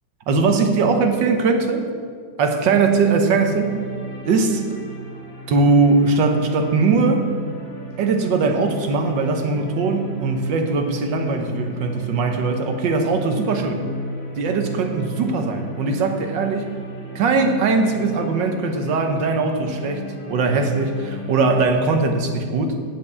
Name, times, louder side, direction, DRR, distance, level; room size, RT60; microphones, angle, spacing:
voice 1, 0.3-1.8 2.4-3.8 4.2-4.6 5.5-7.3 8.0-13.8 14.4-16.7 17.1-22.7, right 4 dB, 70° right, 5 dB, 1.6 m, -20 dB
sound 1, 3.2-21.6, right 1 dB, 65° left, 3.3 m, -35 dB
7.9 x 7.3 x 8.1 m, 2.1 s
omnidirectional pair, 2.1 m